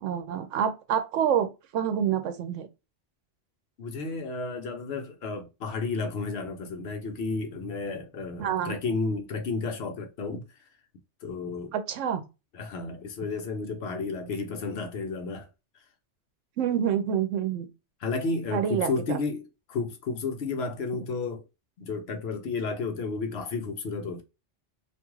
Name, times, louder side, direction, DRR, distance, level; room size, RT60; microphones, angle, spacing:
voice 1, 0.0-2.7 8.4-8.8 11.7-12.3 16.6-17.7 18.5-19.2, right 9 dB, 90° right, 0.9 m, -27 dB
voice 2, 3.8-10.5 11.2-11.7 12.5-15.5 18.0-21.4 21.8-24.2, left 4 dB, 65° left, 0.8 m, -32 dB
2.5 x 2.3 x 2.9 m
omnidirectional pair, 1.2 m